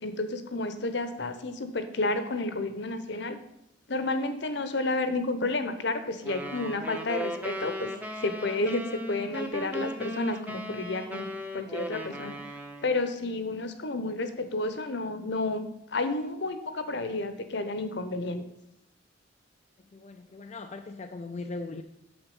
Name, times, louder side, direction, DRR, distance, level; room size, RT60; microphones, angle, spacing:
voice 1, 0.0-3.4 3.9-7.9 8.2-12.4 12.8-15.6 15.9-18.4, left 2 dB, 60° left, 10 dB, 0.9 m, -31 dB
sound 1, 6.2-13.1, equal, 10° right, 0.8 m, -37 dB
voice 2, 19.9-21.8, left 3 dB, 35° left, 5 dB, 0.4 m, -39 dB
8.8 x 7.0 x 5.4 m, 0.83 s
head